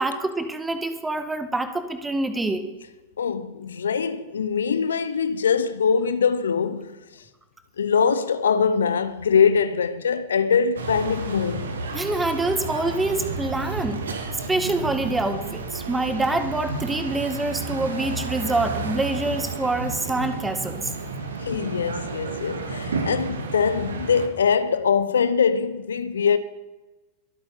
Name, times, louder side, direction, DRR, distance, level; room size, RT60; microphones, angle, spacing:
voice 1, 0.0-2.7 11.9-14.0 14.5-20.9, right 2 dB, 10° right, 1.6 m, -26 dB
voice 2, 3.2-7.2 7.8-11.7 21.4-26.4, left 6 dB, 70° left, 0.8 m, -23 dB
sound 1, 10.8-24.3, right 3 dB, 70° right, 1.8 m, -31 dB
23.0 x 8.8 x 5.6 m
figure-of-eight pair, 90°, 0 cm